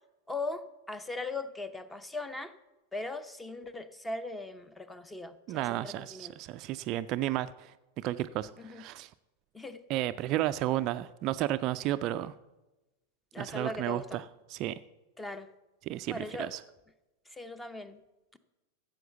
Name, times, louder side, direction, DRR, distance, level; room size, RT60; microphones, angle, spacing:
voice 1, 0.3-2.5 2.9-6.3 8.6-8.8 9.5-9.8 13.3-14.2 15.2-15.5 16.1-16.5 17.3-18.0 18.3-18.4, left 2 dB, 10° left, 13 dB, 0.8 m, -39 dB
voice 2, 5.5-9.1 9.9-12.3 13.4-14.2 14.5-14.8 15.8-16.6, right 14 dB, 40° right, 12 dB, 0.4 m, -33 dB
14.0 x 7.8 x 6.8 m, 1.1 s
figure-of-eight pair, 90°, 0 cm